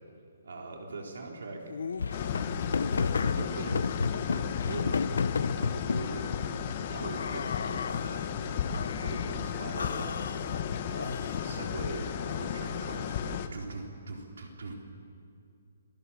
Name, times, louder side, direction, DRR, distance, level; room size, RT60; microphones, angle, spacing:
voice 1, 0.4-1.7 2.0-2.4 2.8-5.1 5.5-6.4 6.8-8.6 9.0-10.2 10.9-14.7, right 3 dB, 70° right, 2 dB, 3.8 m, -42 dB
sound 1, 1.7-6.2 7.0-8.3 8.7-9.3 9.8-11.6, left 5 dB, 65° left, 0.8 m, -32 dB
sound 2, 2.1-13.5, left 8 dB, 25° left, 1.0 m, -34 dB
voice 2, 9.4-10.8, equal, 5° right, -8 dB, 7.5 m, -53 dB
28.0 x 21.5 x 7.2 m, 2.5 s
hypercardioid pair, 180°, 0 cm